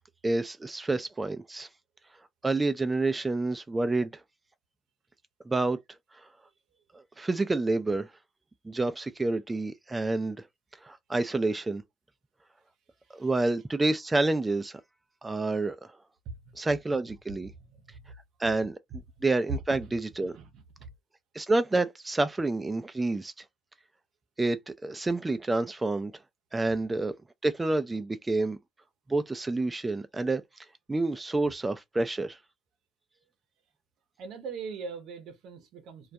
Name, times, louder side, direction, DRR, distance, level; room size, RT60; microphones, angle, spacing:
voice 1, 0.2-1.7 2.4-4.1 5.5-5.8 6.9-8.1 8.7-10.4 10.8-11.8 13.1-14.8 15.2-15.8 16.6-17.5 18.4-18.8 19.2-20.4 21.3-23.4 24.4-26.1 26.5-27.1 27.4-28.6 29.1-30.4 30.9-32.4, right 2 dB, 20° right, 0.3 m, -28 dB
voice 2, 16.2-16.6 17.5-18.1 19.8-19.9 20.2-20.9 34.2-36.1, right 5 dB, 70° right, 0.7 m, -42 dB
2.3 x 2.1 x 2.6 m
hypercardioid pair, 55°, 0 cm